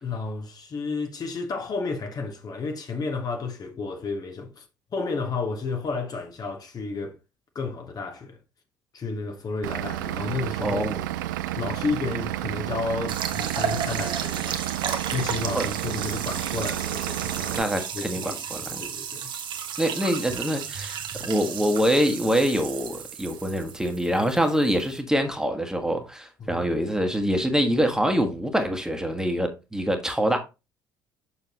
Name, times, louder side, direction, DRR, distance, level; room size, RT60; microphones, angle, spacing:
voice 1, 0.0-4.6 4.9-7.2 7.5-8.4 8.9-10.9 11.6-19.3 26.4-26.6, left 4 dB, 35° left, 1.4 m, -32 dB
Vehicle / Engine, 9.6-17.6, right 14 dB, 65° right, 0.4 m, -31 dB
voice 2, 10.6-11.0 15.5-15.7 17.5-18.8 19.8-21.0 21.2-30.4, equal, 5° right, 1.6 m, -25 dB
sound 1, 13.1-25.0, right 7 dB, 45° right, 1.2 m, -34 dB
7.0 x 6.5 x 3.0 m
figure-of-eight pair, 55°, 11 cm